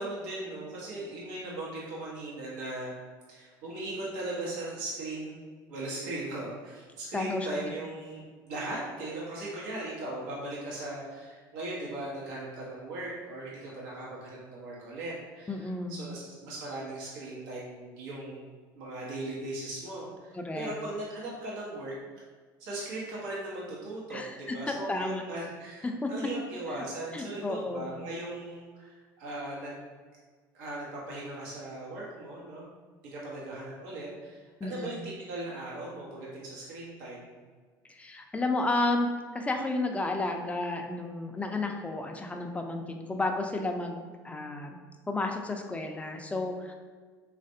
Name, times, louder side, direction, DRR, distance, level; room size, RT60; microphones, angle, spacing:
voice 1, 0.0-2.9 3.3-5.4 5.7-18.4 18.7-21.9 22.6-29.8 30.5-32.7 33.1-37.4, right 2 dB, 80° right, -6 dB, 0.9 m, -38 dB
voice 2, 7.1-7.5 15.5-16.1 20.3-20.7 24.1-25.2 25.8-26.1 27.1-27.9 34.6-35.1 37.9-44.8 45.1-46.7, left 2 dB, 15° left, 3 dB, 0.4 m, -32 dB
3.3 x 2.4 x 2.6 m, 1.5 s
hypercardioid pair, 75°, 10 cm